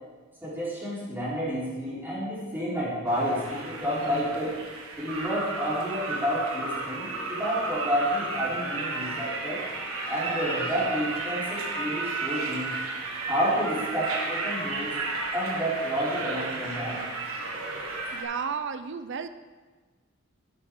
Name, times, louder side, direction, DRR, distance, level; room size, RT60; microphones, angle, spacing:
voice 1, 0.4-4.6 5.0-9.7 10.1-12.7 13.3-15.0 15.3-17.0, equal, 10° right, -9 dB, 3.8 m, -30 dB
sound 1, 3.1-18.2, right 3 dB, 85° right, 1.7 m, -33 dB
voice 2, 18.1-19.3, right 6 dB, 60° right, 11 dB, 0.6 m, -32 dB
12.5 x 8.3 x 3.8 m, 1.3 s
head